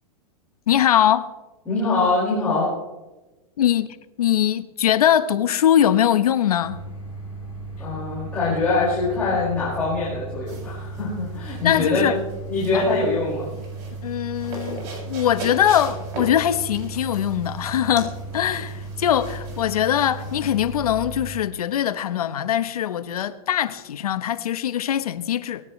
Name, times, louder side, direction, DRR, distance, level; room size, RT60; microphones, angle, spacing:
voice 1, 0.7-1.3 3.6-3.9 4.2-6.8 11.6-12.2 12.7-13.0 14.0-25.6, left 10 dB, 85° left, 1.1 m, -22 dB
voice 2, 1.7-2.7 7.8-12.1 12.5-13.5, left 3 dB, 10° left, 5.6 m, -23 dB
sound 1, 6.6-21.3, right 3 dB, 10° right, 6.6 m, -36 dB
sound 2, 10.5-20.8, right 2 dB, 40° right, 7.0 m, -40 dB
20.5 x 17.0 x 3.3 m
supercardioid pair, 165°, 19 cm